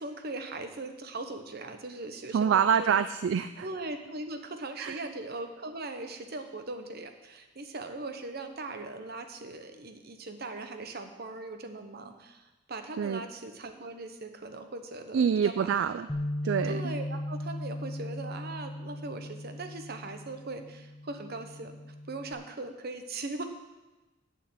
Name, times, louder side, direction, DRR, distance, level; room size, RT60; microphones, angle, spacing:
voice 1, 0.0-3.0 3.6-16.1 16.7-21.8 22.1-23.5, right 2 dB, 55° right, 7 dB, 1.0 m, -40 dB
voice 2, 2.3-3.7 4.8-5.0 13.0-13.2 15.1-16.1 16.4-16.9, right 7 dB, 70° right, 12 dB, 0.3 m, -26 dB
Bass guitar, 16.1-22.3, left 1 dB, 20° left, 0.9 m, -38 dB
8.7 x 6.5 x 8.0 m, 1.1 s
head